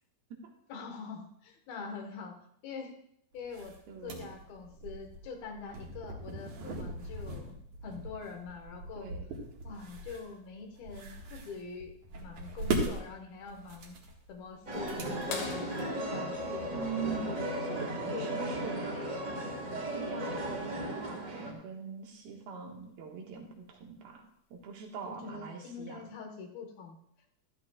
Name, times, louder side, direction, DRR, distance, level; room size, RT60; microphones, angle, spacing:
voice 1, 0.7-2.4 2.6-2.9 3.3-3.8 4.0-7.6 7.8-9.1 9.6-14.0 14.3-16.7 17.1-17.2 18.1-18.3 18.7-19.3 25.1-27.0, left 5 dB, 85° left, 3 dB, 3.4 m, -44 dB
sound 1, 3.4-16.2, right 3 dB, 60° right, 3.0 m, -40 dB
voice 2, 3.9-4.3 9.0-9.3 16.7-18.8 19.8-24.3 24.5-26.1, right 6 dB, 90° right, 1 dB, 3.5 m, -42 dB
sound 2, 14.7-21.5, right 1 dB, 35° right, 1.5 m, -36 dB
sound 3, 15.3-17.8 19.7-19.8 22.0-22.1 23.8-24.1 24.9-25.0, left 5 dB, 70° left, 2.8 m, -43 dB
15.0 x 13.5 x 2.4 m, 0.69 s
omnidirectional pair, 4.2 m